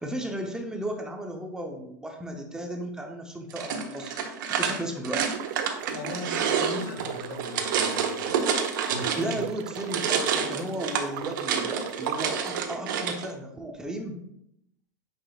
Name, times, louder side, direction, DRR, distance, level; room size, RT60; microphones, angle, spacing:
voice 1, 0.0-5.2 8.9-14.2, right 1 dB, 5° right, 3 dB, 0.6 m, -35 dB
sound 1, 3.5-9.5 9.7-13.3, right 6 dB, 80° right, 1.0 m, -28 dB
sound 2, 5.3-12.6, right 12 dB, 45° right, 0.4 m, -38 dB
voice 2, 5.9-8.4 8.9-9.5, left 3 dB, 85° left, 3 dB, 1.7 m, -39 dB
8.4 x 5.1 x 2.3 m, 0.76 s
supercardioid pair, 150°, 11 cm